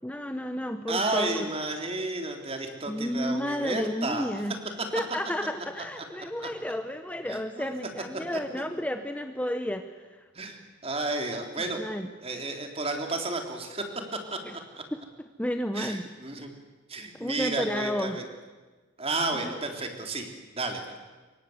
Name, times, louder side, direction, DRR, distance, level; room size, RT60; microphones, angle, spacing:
voice 1, 0.0-1.5 2.9-4.6 4.9-10.3 11.6-12.1 14.4-14.6 14.9-16.1 17.2-18.2 19.3-19.6, equal, 5° left, 7 dB, 0.9 m, -32 dB
voice 2, 0.9-4.3 4.9-5.0 7.3-7.7 10.3-11.8 12.2-13.8 14.3-14.4 14.7-14.8 15.7-16.6 16.9-18.3 19.0-20.8, right 2 dB, 30° right, 4 dB, 3.6 m, -32 dB
27.0 x 23.5 x 8.0 m, 1.3 s
head